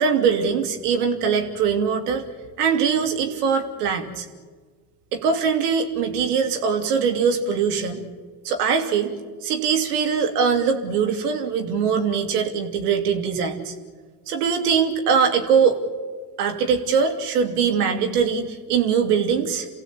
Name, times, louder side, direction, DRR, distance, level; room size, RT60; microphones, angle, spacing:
voice 1, 0.0-2.2 2.6-4.2 5.1-8.0 8.4-9.1 9.4-13.7 14.3-15.8 16.4-19.7, right 6 dB, 80° right, 5 dB, 2.9 m, -22 dB
29.0 x 16.0 x 8.6 m, 1.5 s
hypercardioid pair, 65°, 46 cm